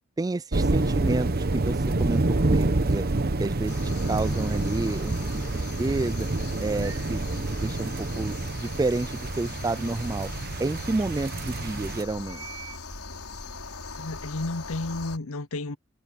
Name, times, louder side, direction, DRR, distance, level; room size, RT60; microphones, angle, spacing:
voice 1, 0.2-3.1 3.4-6.3 6.6-7.2 7.5-10.3 10.6-12.5, right 2 dB, 15° right, 0.4 m, -30 dB
sound 1, 0.5-12.0, right 2 dB, 45° right, 1.0 m, -27 dB
sound 2, 3.7-15.2, left 3 dB, 85° left, 5.2 m, -40 dB
sound 3, 4.6-5.6 5.8-7.1 7.7-7.8 10.0-10.1 10.2-10.3 11.0-11.1 11.6-12.8, right 9 dB, 80° right, 7.6 m, -47 dB
voice 2, 14.0-15.8, left 2 dB, 70° left, 0.8 m, -32 dB
head